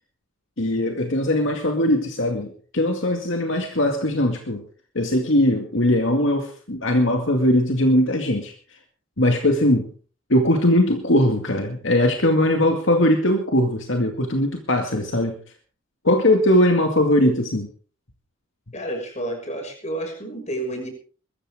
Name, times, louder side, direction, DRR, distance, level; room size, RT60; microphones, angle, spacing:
voice 1, 0.6-4.6 4.9-8.5 9.2-9.9 10.3-15.4 16.0-17.7, left 1 dB, 65° left, 4 dB, 2.2 m, -20 dB
voice 2, 18.7-20.9, right 1 dB, 35° left, 4 dB, 6.1 m, -30 dB
22.0 x 14.5 x 3.7 m, 0.39 s
head